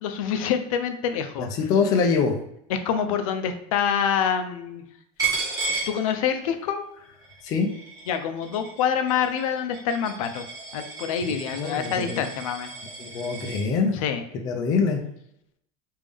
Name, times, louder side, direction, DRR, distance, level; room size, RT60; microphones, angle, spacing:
voice 1, 0.0-1.5 2.7-4.8 5.7-7.0 8.1-10.5 10.7-12.7 13.9-14.2, left 7 dB, 75° left, 8 dB, 0.5 m, -26 dB
voice 2, 1.4-2.4 7.4-7.7 11.2-12.2 13.0-13.9 14.3-15.0, left 5 dB, 20° left, 2 dB, 0.3 m, -24 dB
Coin (dropping), 5.2-6.7 7.0-13.6, right 4 dB, 20° right, 1.1 m, -34 dB
3.4 x 2.6 x 3.4 m, 0.74 s
supercardioid pair, 175°, 18 cm